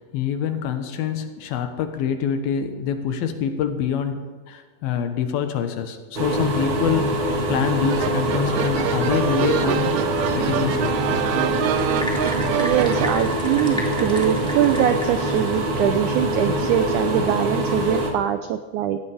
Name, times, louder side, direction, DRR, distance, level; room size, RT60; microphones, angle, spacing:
voice 1, 0.0-11.0, left 8 dB, 80° left, 7 dB, 3.0 m, -26 dB
sound 1, 6.1-18.1, right 1 dB, 40° right, 2.2 m, -24 dB
sound 2, 7.9-13.1, right 11 dB, 75° right, 2.0 m, -26 dB
sound 3, 11.5-15.6, equal, ahead, 1.2 m, -34 dB
voice 2, 12.6-19.0, right 10 dB, 90° right, 8 dB, 1.7 m, -22 dB
17.0 x 17.0 x 3.5 m, 1.4 s
omnidirectional pair, 4.3 m